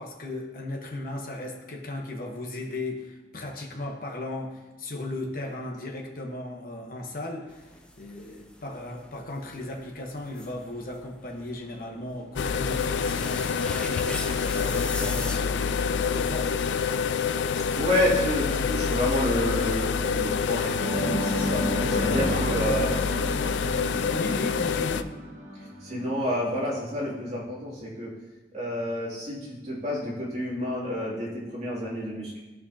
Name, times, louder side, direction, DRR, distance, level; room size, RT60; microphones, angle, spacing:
voice 1, 0.0-7.6 8.0-16.5 22.1-22.6 24.1-25.1, left 2 dB, 50° left, 1 dB, 1.1 m, -36 dB
sound 1, 7.5-15.4, left 1 dB, 5° left, 0.6 m, -41 dB
sound 2, 12.4-25.0, left 6 dB, 90° left, 0.4 m, -27 dB
voice 2, 17.8-22.9 25.8-28.1 28.5-32.4, equal, 40° right, -6 dB, 2.6 m, -29 dB
sound 3, 20.8-26.7, right 1 dB, 65° right, 2.5 m, -32 dB
13.5 x 5.2 x 2.8 m, 1.1 s
head